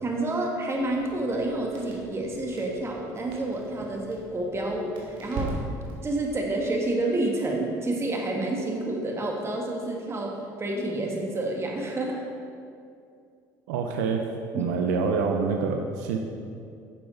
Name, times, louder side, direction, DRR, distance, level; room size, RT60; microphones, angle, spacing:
voice 1, 0.0-5.6 6.0-12.2 14.5-14.7, right 2 dB, 30° right, 0 dB, 1.8 m, -29 dB
Crackle, 0.8-6.1, right 2 dB, 65° right, 2.4 m, -39 dB
voice 2, 13.7-14.2 14.5-16.2, right 5 dB, 85° right, 3 dB, 0.7 m, -26 dB
10.0 x 6.9 x 3.9 m, 2.4 s
supercardioid pair, 80°, 9 cm